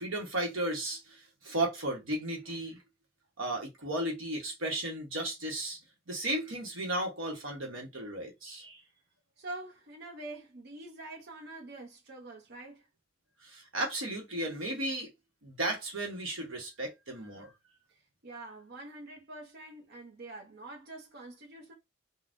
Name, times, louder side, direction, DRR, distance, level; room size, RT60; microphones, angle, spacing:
voice 1, 0.0-2.8 3.4-5.8 6.1-8.8 13.4-15.1 15.4-17.5, right 1 dB, 80° right, 1.0 m, -34 dB
voice 2, 9.4-12.9 17.9-21.7, right 2 dB, 55° right, 0.8 m, -45 dB
3.4 x 2.2 x 2.5 m
head